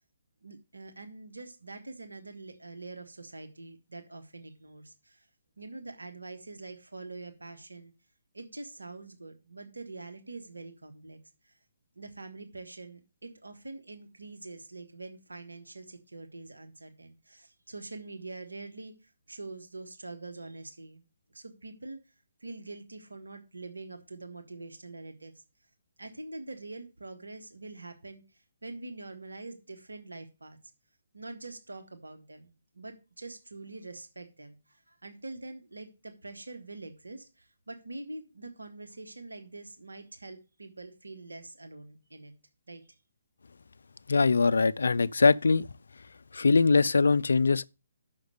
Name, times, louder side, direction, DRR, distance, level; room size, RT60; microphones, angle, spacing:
voice 1, 0.4-5.3 5.6-7.9 8.3-11.2 11.4-11.5 11.9-22.0 22.4-25.3 26.0-30.6 31.1-42.3 42.7-43.0, right 2 dB, 85° right, 1.2 m, -45 dB
voice 2, 44.1-45.7 46.3-47.7, left 4 dB, 70° left, 0.3 m, -22 dB
6.4 x 5.8 x 6.5 m
figure-of-eight pair, 135°, 0 cm